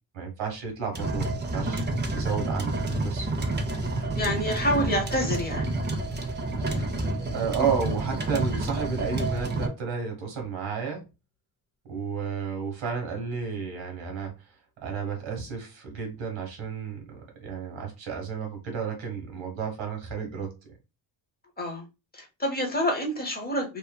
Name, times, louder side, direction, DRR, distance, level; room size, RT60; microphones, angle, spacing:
voice 1, 0.1-1.8 2.1-2.8 3.0-3.3 7.3-11.1 11.8-14.3 14.8-20.7, right 6 dB, 90° right, 3 dB, 1.2 m, -32 dB
sound 1, 0.9-9.7, right 2 dB, 25° right, 0.5 m, -29 dB
voice 2, 4.2-5.7 21.6-21.8 22.1-23.8, equal, 20° left, 2 dB, 0.7 m, -27 dB
2.7 x 2.5 x 2.2 m, 0.27 s
wide cardioid pair, 125°, 46 cm